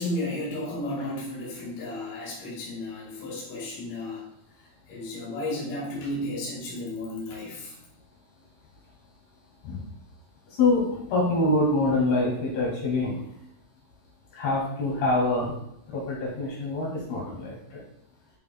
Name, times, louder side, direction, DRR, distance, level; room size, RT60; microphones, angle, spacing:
voice 1, 0.0-4.3 4.9-7.8, left 1 dB, 55° left, -6 dB, 3.3 m, -33 dB
voice 2, 10.5-13.2 14.3-15.5 15.9-17.8, left 2 dB, 75° left, -5 dB, 4.4 m, -25 dB
11.5 x 5.4 x 2.3 m, 0.75 s
omnidirectional pair, 4.6 m